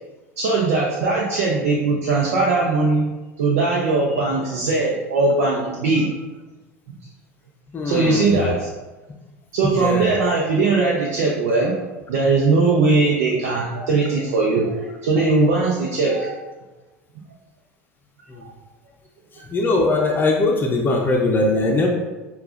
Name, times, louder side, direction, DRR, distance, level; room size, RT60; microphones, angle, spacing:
voice 1, 0.4-3.1 3.4-6.1 7.8-8.7 9.5-11.7 12.1-16.3, right 3 dB, 70° right, -3 dB, 0.7 m, -20 dB
voice 2, 7.7-8.5 9.7-10.3 18.3-18.4 19.5-21.9, left 2 dB, 25° left, 1 dB, 0.6 m, -21 dB
6.7 x 2.4 x 2.5 m, 1.2 s
hypercardioid pair, 80°, 8 cm